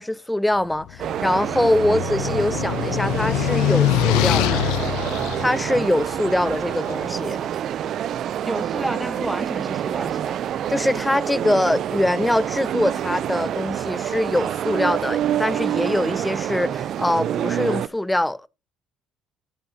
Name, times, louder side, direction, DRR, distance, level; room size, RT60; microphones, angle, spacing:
voice 1, 0.0-4.6 5.4-7.4 10.7-18.5, left 1 dB, 10° left, 0.4 m, -23 dB
sound 1, 0.8-7.1, left 14 dB, 80° left, 0.4 m, -24 dB
sound 2, 1.0-17.9, right 10 dB, 60° right, 0.4 m, -27 dB
voice 2, 8.4-10.4, right 1 dB, 10° right, 1.1 m, -30 dB
13.0 x 7.6 x 2.7 m
supercardioid pair, 70°, 0 cm